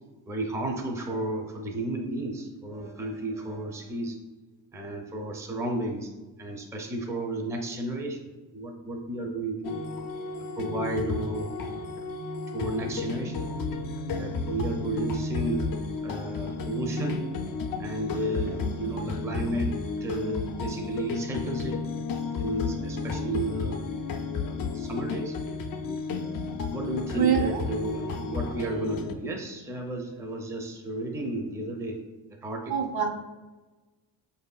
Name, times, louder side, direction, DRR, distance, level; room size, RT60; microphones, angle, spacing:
voice 1, 0.3-4.2 4.7-6.1 6.4-9.8 10.6-12.1 12.5-13.5 14.1-15.6 16.0-17.2 17.8-19.7 20.0-21.8 22.4-23.8 24.4-25.4 26.7-32.0 32.3-32.7, right 1 dB, 5° right, 2 dB, 0.5 m, -33 dB
sound 1, 9.6-29.1, left 3 dB, 45° left, 0.5 m, -32 dB
voice 2, 27.2-27.7 32.7-33.1, right 7 dB, 50° right, 5 dB, 0.6 m, -25 dB
4.9 x 2.7 x 2.3 m, 1.2 s
supercardioid pair, 60°, 48 cm